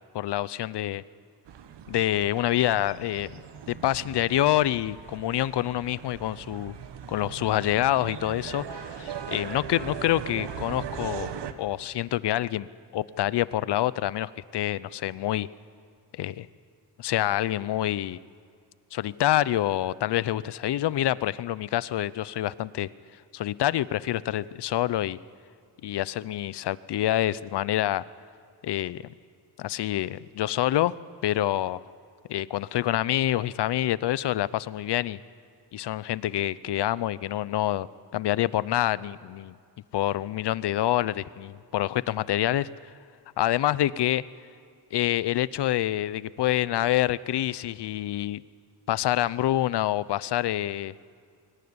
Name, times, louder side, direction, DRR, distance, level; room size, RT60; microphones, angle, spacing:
voice 1, 0.1-1.0 1.9-3.4 3.7-6.8 7.1-11.3 11.6-12.7 12.9-15.5 16.2-16.5 17.0-18.2 18.9-22.9 23.3-25.2 25.8-28.0 28.6-29.1 29.6-30.9 31.2-31.8 32.3-35.2 35.7-37.9 38.1-39.5 39.9-42.7 43.4-44.2 44.9-48.4 48.9-50.9, left 13 dB, 80° left, 19 dB, 0.7 m, -26 dB
sound 1, 1.5-11.5, right 8 dB, 90° right, 1.3 m, -39 dB
22.5 x 18.0 x 9.7 m, 2.2 s
wide cardioid pair, 160°, 40 cm